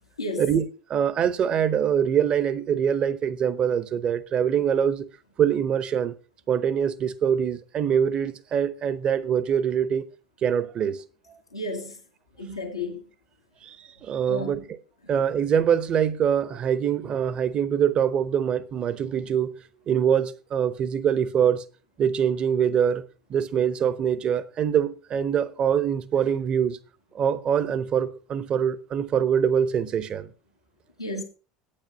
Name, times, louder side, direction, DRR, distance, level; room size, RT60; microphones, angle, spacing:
voice 1, 0.2-0.5 11.5-12.0 12.4-13.0 14.3-14.6 31.0-31.2, left 2 dB, 85° left, 1.5 m, -32 dB
voice 2, 0.9-5.1 5.4-6.1 6.5-10.0 10.4-11.0 13.6-14.6 15.1-19.5 19.9-21.6 22.0-23.0 23.3-26.8 27.1-30.3, right 8 dB, 35° right, 0.9 m, -24 dB
8.8 x 8.7 x 5.3 m
figure-of-eight pair, 70°, 3 cm